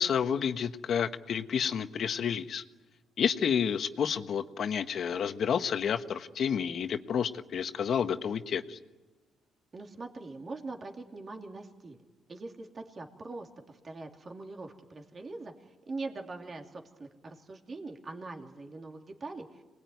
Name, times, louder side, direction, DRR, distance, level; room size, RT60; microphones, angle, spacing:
voice 1, 0.0-2.6 3.2-8.8, left 7 dB, 60° left, 9 dB, 1.3 m, -30 dB
voice 2, 9.7-12.0 12.3-19.6, right 3 dB, 35° right, 3 dB, 2.9 m, -42 dB
26.5 x 20.0 x 9.4 m, 1.2 s
cardioid pair, 90°, 0 cm